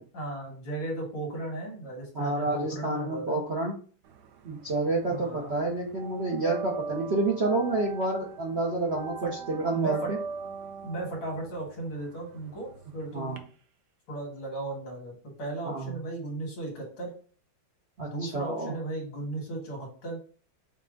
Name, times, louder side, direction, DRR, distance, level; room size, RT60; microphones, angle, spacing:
voice 1, 0.0-3.4 5.1-5.5 9.2-9.3 9.7-10.1 10.8-13.4 14.1-17.1 18.0-20.2, right 2 dB, 85° left, 0 dB, 2.6 m, -36 dB
voice 2, 2.1-3.7 4.4-10.2 13.1-13.4 15.6-15.9 18.0-18.8, right 2 dB, 55° right, -3 dB, 0.7 m, -29 dB
sound 1, 4.1-5.2 5.5-13.4, right 5 dB, 70° right, 1.1 m, -39 dB
6.0 x 2.2 x 3.8 m, 0.41 s
omnidirectional pair, 2.2 m